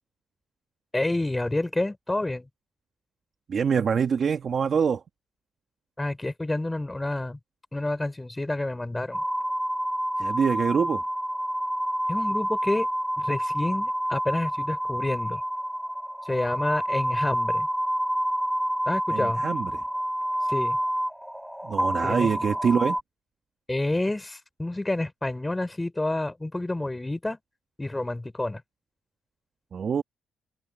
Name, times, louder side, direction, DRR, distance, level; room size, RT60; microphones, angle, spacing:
voice 1, 0.9-2.5 6.0-7.4 7.7-9.2 12.1-12.9 13.2-15.4 16.2-17.7 18.9-19.4 20.5-20.8 22.0-22.3 23.7-27.4 27.8-28.6, left 2 dB, 15° left, 4.4 m, -29 dB
voice 2, 3.5-5.0 10.2-11.0 19.1-19.8 21.6-23.0 29.7-30.0, right 6 dB, 50° right, 1.9 m, -25 dB
sound 1, 9.1-23.0, equal, 5° right, 5.2 m, -28 dB
cardioid pair, 90°, 0 cm